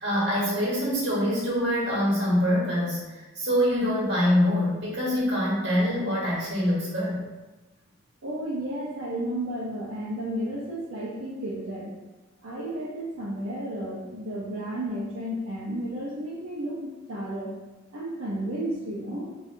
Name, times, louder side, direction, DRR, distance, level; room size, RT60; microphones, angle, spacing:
voice 1, 0.0-3.0 3.3-7.2, equal, 60° right, -6 dB, 1.3 m, -24 dB
voice 2, 8.2-11.9 12.4-17.5 17.9-19.3, right 1 dB, 90° right, -6 dB, 0.6 m, -32 dB
4.2 x 2.4 x 2.5 m, 1.1 s
head